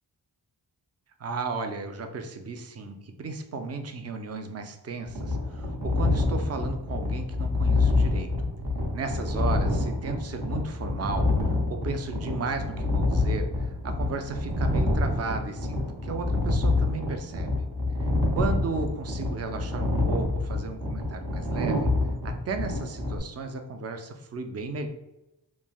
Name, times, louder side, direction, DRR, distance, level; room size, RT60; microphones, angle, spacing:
voice 1, 1.2-8.5 8.9-11.3 11.7-17.5 18.0-21.9 22.2-24.9, right 4 dB, 35° right, 6 dB, 0.4 m, -34 dB
sound 1, 5.1-23.2, left 2 dB, 60° right, 0.8 m, -27 dB
3.1 x 2.5 x 2.2 m, 0.93 s
wide cardioid pair, 80°, 43 cm